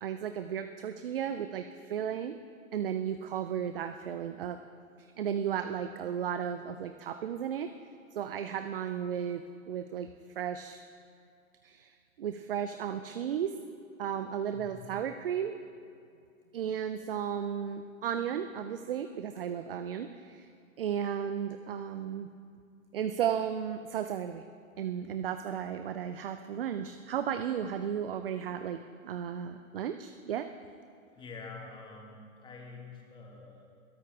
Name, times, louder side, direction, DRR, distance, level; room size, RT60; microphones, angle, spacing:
voice 1, 0.0-2.3 2.7-4.6 5.0-7.7 8.1-10.1 10.4-10.8 11.6-13.6 14.0-15.6 16.5-20.5 20.8-22.3 22.9-24.4 24.8-30.5, right 9 dB, 45° right, 9 dB, 0.5 m, -34 dB
voice 2, 14.5-14.9 31.1-33.7, left 4 dB, 10° left, 0 dB, 1.7 m, -47 dB
21.5 x 17.0 x 2.3 m, 2.4 s
figure-of-eight pair, 115°, 42 cm